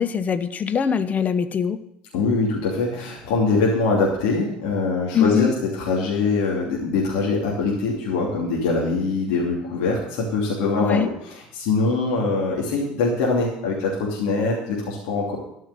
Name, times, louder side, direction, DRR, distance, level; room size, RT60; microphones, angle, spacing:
voice 1, 0.0-1.8 5.1-5.5 10.8-11.1, left 7 dB, 30° left, 11 dB, 0.9 m, -22 dB
voice 2, 2.1-5.5 5.7-15.4, left 3 dB, 60° left, -4 dB, 2.9 m, -23 dB
12.5 x 5.6 x 8.9 m, 0.79 s
figure-of-eight pair, 70°, 5 cm